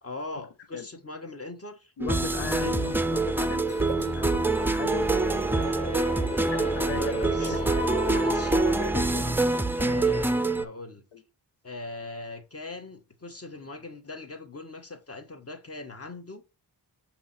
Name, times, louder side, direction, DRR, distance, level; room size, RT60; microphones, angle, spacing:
voice 1, 0.0-1.9 2.6-3.2 5.2-5.4 6.8-7.7 8.1-8.6 9.8-11.0 11.6-16.4, left 3 dB, 35° left, 1.3 m, -40 dB
voice 2, 2.0-5.6 6.7-7.8 8.7-9.6 11.1-11.2, left 7 dB, 80° left, 1.0 m, -38 dB
sound 1, 2.0-10.6, right 3 dB, 5° right, 0.5 m, -25 dB
sound 2, 2.8-8.7, equal, 15° left, 0.9 m, -35 dB
5.9 x 3.0 x 5.6 m
cardioid pair, 65°, 43 cm